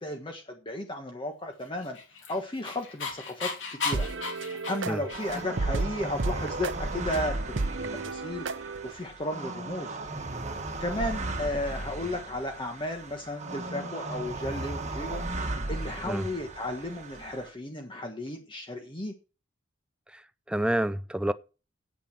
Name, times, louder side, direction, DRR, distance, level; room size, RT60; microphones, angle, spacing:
voice 1, 0.0-2.0 2.3-4.1 4.4-7.4 7.9-10.0 10.8-15.3 15.7-19.1, left 1 dB, 25° left, 1.4 m, -34 dB
Dog, 1.8-5.6, left 4 dB, 75° left, 2.9 m, -35 dB
sound 1, 3.9-8.9, right 3 dB, 70° right, 0.8 m, -33 dB
sound 2, 5.1-17.5, right 2 dB, 35° right, 1.6 m, -36 dB
voice 2, 20.5-21.3, right 1 dB, 5° right, 0.5 m, -28 dB
9.2 x 8.7 x 5.9 m
head